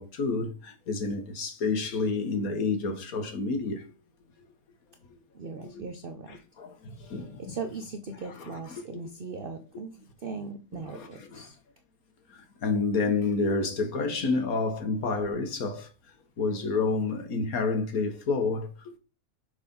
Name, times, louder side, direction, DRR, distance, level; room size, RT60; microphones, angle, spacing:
voice 1, 0.0-3.9 5.6-5.8 6.3-7.5 10.7-11.4 12.3-15.9 16.4-19.0, left 4 dB, 85° left, 1.8 m, -29 dB
voice 2, 5.3-6.4 7.4-11.6, right 4 dB, 45° right, 0.9 m, -39 dB
6.4 x 5.0 x 5.4 m
omnidirectional pair, 1.5 m